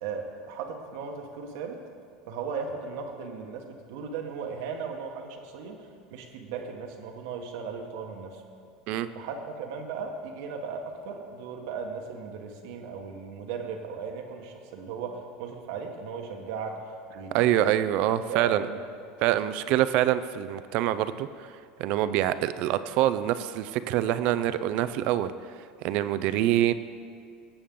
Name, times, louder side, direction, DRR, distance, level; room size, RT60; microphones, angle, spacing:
voice 1, 0.0-1.8 2.3-8.4 9.1-16.8 17.1-17.6 18.3-18.8, right 5 dB, 75° right, 3 dB, 1.3 m, -37 dB
voice 2, 17.3-18.6 19.2-21.5 21.8-25.3 25.8-26.7, right 12 dB, 60° right, 13 dB, 0.5 m, -25 dB
17.5 x 7.1 x 3.8 m, 2.2 s
supercardioid pair, 115°, 2 cm